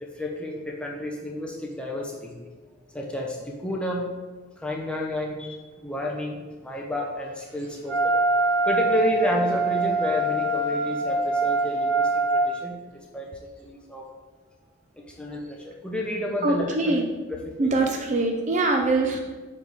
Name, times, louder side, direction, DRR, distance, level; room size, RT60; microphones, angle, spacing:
voice 1, 0.0-2.4 2.9-4.1 4.6-8.2 8.6-12.8 13.1-13.3 13.6-14.1 15.0-17.0 17.6-17.7, left 1 dB, 5° left, -2 dB, 0.7 m, -30 dB
Wind instrument woodwind instrument, 7.9-12.5, right 2 dB, 85° right, 1.5 m, -24 dB
voice 2, 16.4-17.1 17.6-19.2, right 2 dB, 35° right, 2 dB, 0.5 m, -23 dB
7.9 x 4.1 x 3.5 m, 1.3 s
head